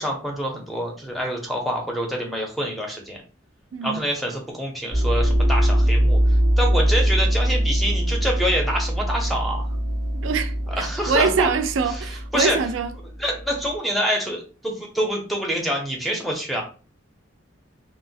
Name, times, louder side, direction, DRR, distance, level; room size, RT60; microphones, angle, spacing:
voice 1, 0.0-3.2 3.8-6.2 6.6-9.6 10.8-11.5 11.9-12.0 12.3-12.6 13.2-16.6, equal, ahead, 0.5 m, -26 dB
voice 2, 3.7-4.0 10.2-12.9, right 4 dB, 80° right, 0.4 m, -24 dB
sound 1, 4.9-13.6, equal, 85° left, 1.0 m, -22 dB
2.9 x 2.0 x 2.6 m
head